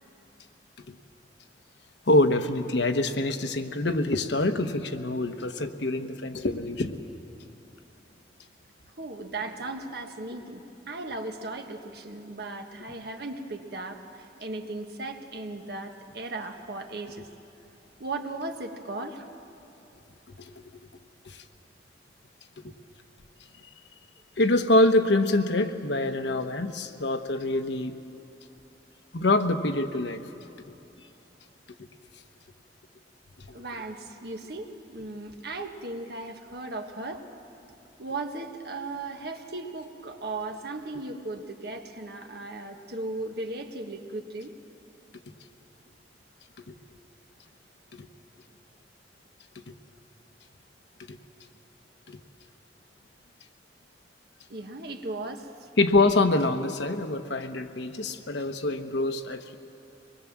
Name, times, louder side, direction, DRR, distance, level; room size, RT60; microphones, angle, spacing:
voice 1, 2.1-7.0 20.3-20.5 21.2-21.4 24.4-28.0 29.1-30.2 33.5-33.6 46.7-46.8 47.9-48.1 49.7-49.8 51.1-51.2 52.1-52.2 55.8-59.6, left 2 dB, 80° left, 6 dB, 1.2 m, -25 dB
voice 2, 9.0-10.6 10.9-17.3 18.0-19.3 22.7-22.8 33.5-37.2 38.0-44.5 54.5-55.7, right 2 dB, 65° right, 4 dB, 1.6 m, -37 dB
24.5 x 21.0 x 7.4 m, 2.9 s
head